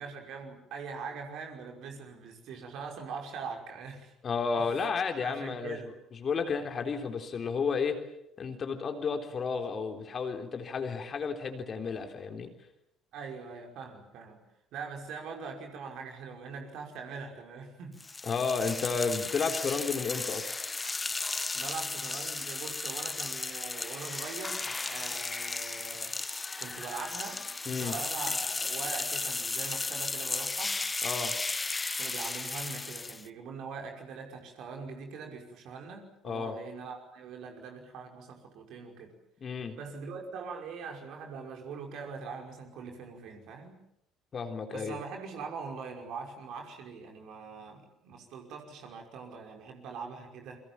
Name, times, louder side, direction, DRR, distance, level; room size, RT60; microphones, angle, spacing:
voice 1, 0.0-4.1 4.6-4.9 5.2-5.9 6.4-6.6 13.1-14.4 14.7-18.0 21.5-26.1 26.6-30.7 32.0-39.1 39.8-43.8 44.7-50.6, right 5 dB, 55° right, 3 dB, 5.6 m, -42 dB
voice 2, 4.2-8.0 8.4-12.5 18.2-20.5 27.7-28.0 31.0-31.3 36.2-36.6 39.4-39.8 44.3-45.0, left 5 dB, 35° left, 5 dB, 3.6 m, -32 dB
sound 1, 18.0-33.3, left 3 dB, 20° left, 0.9 m, -35 dB
28.5 x 24.5 x 7.3 m, 0.80 s
figure-of-eight pair, 55°, 0 cm